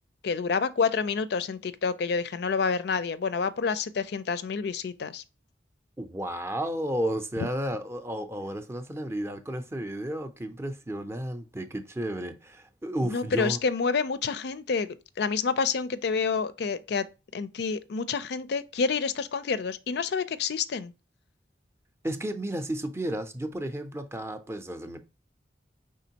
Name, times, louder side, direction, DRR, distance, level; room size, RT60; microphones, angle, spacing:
voice 1, 0.2-5.2 13.0-17.1 17.3-20.9, left 5 dB, 60° left, 0.4 m, -28 dB
voice 2, 6.0-13.6 22.0-25.0, right 1 dB, 15° right, 0.5 m, -32 dB
5.1 x 3.7 x 2.8 m
head